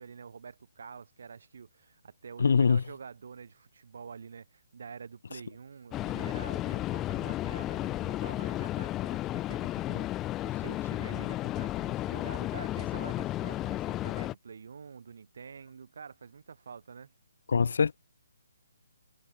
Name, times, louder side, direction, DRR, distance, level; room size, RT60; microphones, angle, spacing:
voice 1, 0.0-17.1, right 6 dB, 60° right, 4.2 m, -47 dB
voice 2, 2.4-2.8 17.5-18.0, left 5 dB, 65° left, 1.2 m, -23 dB
sound 1, 5.9-14.3, left 15 dB, 15° left, 0.5 m, -33 dB
hypercardioid pair, 165°, 0 cm